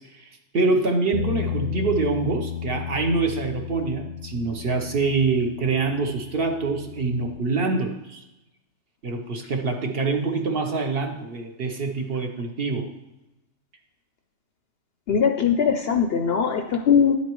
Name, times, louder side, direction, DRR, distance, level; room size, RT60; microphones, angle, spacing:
voice 1, 0.0-8.2 9.0-12.9, right 3 dB, 50° right, 3 dB, 1.0 m, -25 dB
Bass guitar, 1.1-7.4, left 10 dB, 80° left, 1.0 m, -33 dB
voice 2, 15.1-17.1, left 7 dB, 60° left, 5 dB, 0.7 m, -20 dB
10.5 x 8.3 x 3.1 m, 0.98 s
omnidirectional pair, 1.4 m